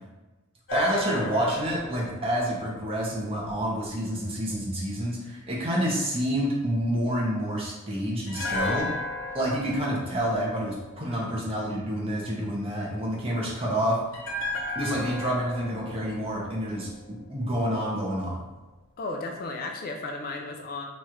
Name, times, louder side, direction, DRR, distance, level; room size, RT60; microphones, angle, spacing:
sound 1, 0.7-3.9 8.3-11.5 14.1-17.3 17.6-17.7, left 2 dB, 75° left, 0.9 m, -35 dB
voice 1, 0.7-8.9 9.3-14.0 14.7-18.4, equal, 30° right, -4 dB, 0.8 m, -28 dB
voice 2, 19.0-20.8, left 2 dB, 45° left, 2 dB, 0.4 m, -34 dB
3.1 x 2.5 x 4.4 m, 1.1 s
head